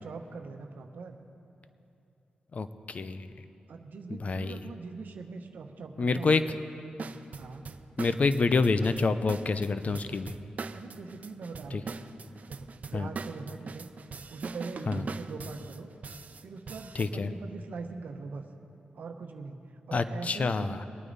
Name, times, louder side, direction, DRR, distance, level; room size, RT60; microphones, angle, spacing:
voice 1, 0.0-1.2 3.7-6.6 7.3-7.7 10.7-12.0 12.5-13.9 14.3-15.9 16.4-18.4 18.9-19.6 19.9-20.9, right 4 dB, 75° right, 4 dB, 0.9 m, -42 dB
voice 2, 2.5-3.3 4.1-4.6 6.0-6.4 8.0-10.3 11.7-11.8 12.9-13.1 14.9-15.0 16.9-17.3 19.9-20.8, left 4 dB, 50° left, 11 dB, 0.7 m, -27 dB
sound 1, 7.0-17.1, right 4 dB, 55° right, 0.5 m, -42 dB
22.0 x 9.2 x 4.0 m, 2.9 s
cardioid pair, 65°, 3 cm